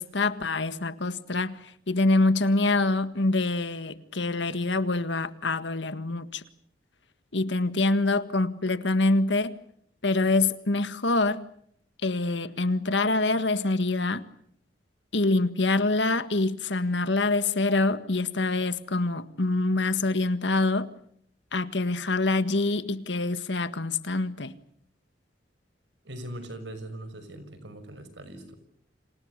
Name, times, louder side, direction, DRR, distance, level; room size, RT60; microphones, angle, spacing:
voice 1, 0.0-1.6 1.9-6.4 7.3-9.6 10.0-11.5 12.0-14.3 15.1-20.9 21.5-24.5, left 2 dB, 70° left, 1.8 m, -25 dB
voice 2, 26.0-28.5, right 1 dB, 75° right, 6.1 m, -40 dB
30.0 x 27.5 x 6.7 m
head